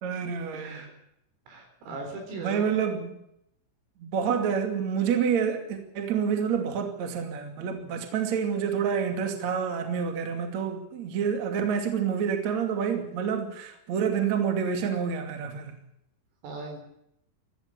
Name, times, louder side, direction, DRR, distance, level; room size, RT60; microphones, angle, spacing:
voice 1, 0.0-0.9 2.3-3.1 4.0-15.7, right 7 dB, 45° right, 3.0 m, -28 dB
voice 2, 0.5-0.9 1.5-2.7 16.4-16.8, right 3 dB, 75° right, 6.7 m, -39 dB
18.5 x 14.5 x 9.9 m
omnidirectional pair, 6.0 m